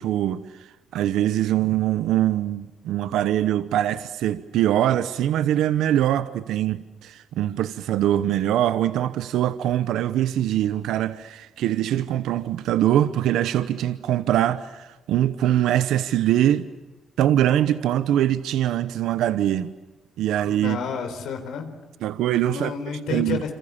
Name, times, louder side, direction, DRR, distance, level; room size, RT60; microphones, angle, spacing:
voice 1, 0.0-16.7 17.2-19.7 20.2-20.8 22.0-23.5, right 12 dB, 85° right, 0.9 m, -23 dB
voice 2, 20.4-21.8 22.4-23.5, left 6 dB, 85° left, 4.3 m, -30 dB
27.5 x 27.0 x 7.2 m
cardioid pair, 90°, 0 cm